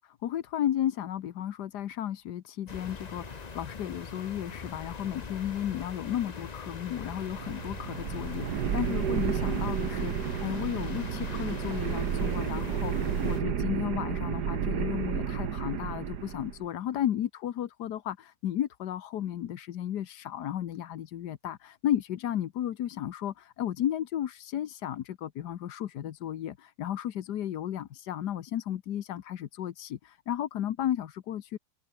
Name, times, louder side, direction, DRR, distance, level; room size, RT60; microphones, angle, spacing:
voice 1, 0.0-31.6, left 11 dB, 85° left, 1.5 m, -34 dB
sound 1, 2.7-13.4, left 4 dB, 30° left, 1.1 m, -42 dB
sound 2, 7.0-16.6, right 8 dB, 85° right, 2.0 m, -32 dB
open air
omnidirectional pair, 1.7 m